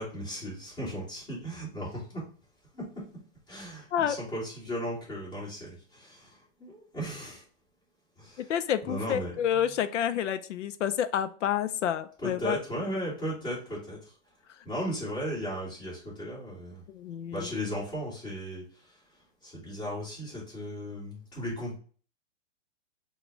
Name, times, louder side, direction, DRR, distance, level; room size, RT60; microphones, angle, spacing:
voice 1, 0.0-2.2 2.7-3.0 3.5-7.4 8.2-8.5 8.8-9.8 12.2-14.1 14.6-16.8 17.3-19.0 19.4-21.8, equal, 15° left, -8 dB, 1.8 m, -36 dB
voice 2, 8.4-12.6 16.9-17.5, left 9 dB, 70° left, 11 dB, 0.5 m, -29 dB
4.1 x 2.3 x 4.4 m, 0.41 s
hypercardioid pair, 180°, 37 cm